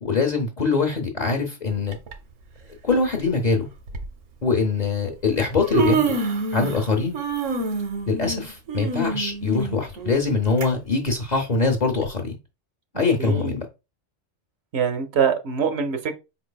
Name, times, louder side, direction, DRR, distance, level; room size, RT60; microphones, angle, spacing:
voice 1, 0.0-2.0 2.8-3.7 4.4-6.1 6.5-7.2 8.1-12.4 12.9-13.7, left 4 dB, 40° left, 0.8 m, -23 dB
Human voice, 1.9-2.1 3.2-3.3 3.9-4.1 5.1-5.2 5.5-6.9 7.1-10.7 11.1-11.2 12.0-12.1, right 4 dB, 85° right, 1.2 m, -26 dB
voice 2, 13.2-13.6 14.7-16.1, right 7 dB, 65° right, 0.9 m, -23 dB
4.8 x 3.9 x 2.2 m
omnidirectional pair, 1.3 m